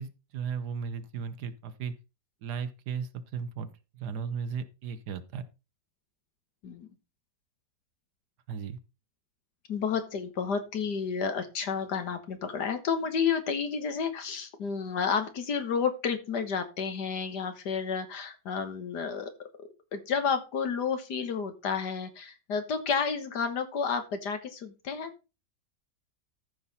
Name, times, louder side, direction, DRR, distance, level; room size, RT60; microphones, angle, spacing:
voice 1, 0.0-1.9 2.4-5.4 8.5-8.8, right 6 dB, 70° right, 1.4 m, -36 dB
voice 2, 9.7-19.3 19.9-25.1, left 6 dB, 65° left, 1.9 m, -31 dB
14.0 x 5.7 x 4.1 m
omnidirectional pair, 1.9 m